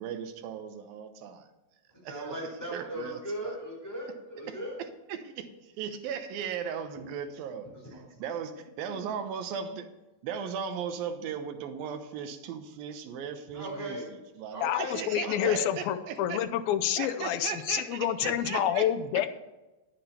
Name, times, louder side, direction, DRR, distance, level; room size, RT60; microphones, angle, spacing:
voice 1, 0.0-1.5 2.0-2.4 2.7-3.6 4.5-4.6 5.1-9.9 10.2-16.4 17.0-18.9, right 7 dB, 80° right, 7 dB, 2.8 m, -37 dB
voice 2, 2.0-4.8 7.8-8.2 13.5-14.1 14.5-15.6, right 1 dB, 5° left, -3 dB, 3.8 m, -38 dB
voice 3, 14.6-19.3, left 11 dB, 85° left, 10 dB, 2.6 m, -28 dB
9.9 x 9.9 x 4.4 m, 1.1 s
omnidirectional pair, 4.1 m